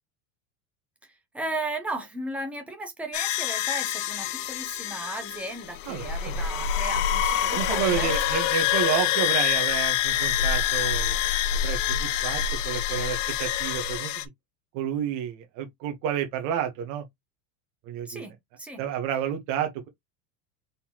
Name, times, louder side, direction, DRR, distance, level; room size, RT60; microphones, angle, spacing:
voice 1, 1.0-8.4 18.0-18.8, right 2 dB, 5° right, 0.7 m, -36 dB
sound 1, 3.1-14.2, left 10 dB, 60° left, 0.8 m, -26 dB
voice 2, 5.9-6.4 7.5-11.3 11.6-14.1 14.7-17.0 17.9-18.3 18.8-19.9, right 9 dB, 45° right, 1.1 m, -30 dB
4.2 x 4.0 x 2.9 m
supercardioid pair, 175°, 43 cm